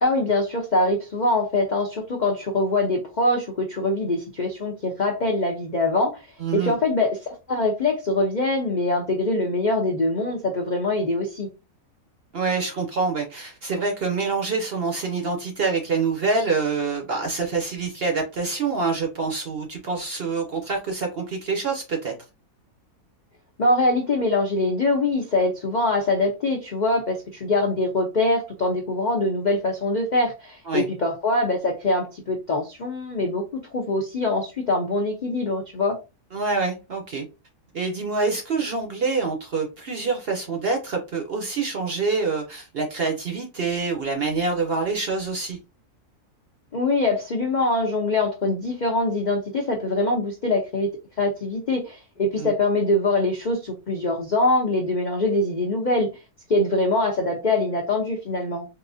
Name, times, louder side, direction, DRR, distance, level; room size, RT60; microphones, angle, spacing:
voice 1, 0.0-6.2 6.5-11.5 23.6-33.4 33.7-36.0 46.7-50.9 51.2-56.1 56.5-58.7, left 2 dB, 65° left, 0.4 m, -23 dB
voice 2, 6.4-6.7 12.3-22.1 30.7-30.8 36.3-37.3 37.7-45.6 52.4-52.5, right 4 dB, 55° right, 0.7 m, -26 dB
4.0 x 2.5 x 2.5 m
omnidirectional pair, 1.7 m